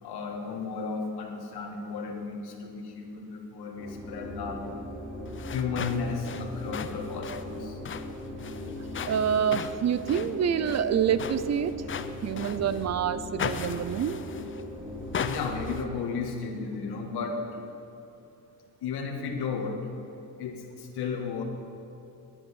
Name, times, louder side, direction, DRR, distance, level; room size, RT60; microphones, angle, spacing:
voice 1, 0.0-4.7 5.5-7.8 15.2-17.6 18.8-19.9 20.4-21.4, left 5 dB, 85° left, 2 dB, 2.0 m, -34 dB
sound 1, 3.8-15.8, left 1 dB, ahead, 3.3 m, -39 dB
sound 2, 5.3-12.9 13.4-14.6 15.1-15.8, left 7 dB, 35° left, 0.6 m, -38 dB
voice 2, 9.0-11.9 12.2-14.2, right 8 dB, 45° right, 14 dB, 0.6 m, -27 dB
10.5 x 10.0 x 9.8 m, 2.9 s
cardioid pair, 145°, 38 cm